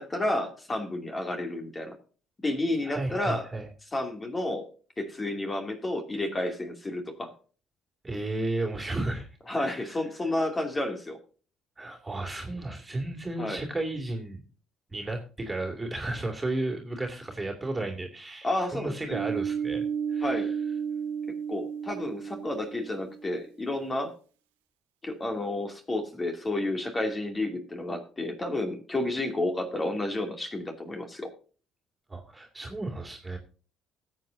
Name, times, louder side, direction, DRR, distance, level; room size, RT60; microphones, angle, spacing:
voice 1, 0.0-1.9 2.4-3.4 3.9-4.7 5.0-7.3 9.5-11.2 13.4-13.6 18.4-19.2 20.2-20.5 21.5-24.1 25.0-31.3, left 1 dB, 25° left, 4 dB, 2.6 m, -31 dB
voice 2, 2.9-3.6 8.0-9.3 9.6-10.0 11.8-14.4 14.9-19.8 20.1-20.5 32.1-33.4, right 2 dB, 20° right, 1 dB, 2.8 m, -33 dB
sound 1, 19.1-23.4, right 7 dB, 85° right, 1.6 m, -32 dB
19.5 x 7.8 x 2.7 m, 0.38 s
hypercardioid pair, 50°, 0 cm